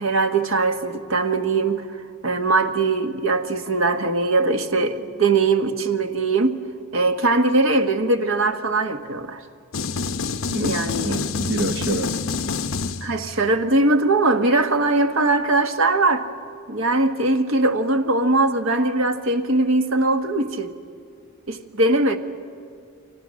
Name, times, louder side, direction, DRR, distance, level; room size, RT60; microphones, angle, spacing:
voice 1, 0.0-1.9 2.2-6.6 6.9-9.4 10.6-11.2 13.0-16.3 16.7-20.7 21.5-22.2, right 2 dB, 80° right, 1.5 m, -21 dB
sound 1, 9.7-13.4, left 4 dB, 80° left, 0.8 m, -27 dB
voice 2, 10.5-12.2, right 1 dB, 55° right, 0.9 m, -27 dB
29.5 x 26.0 x 6.4 m
head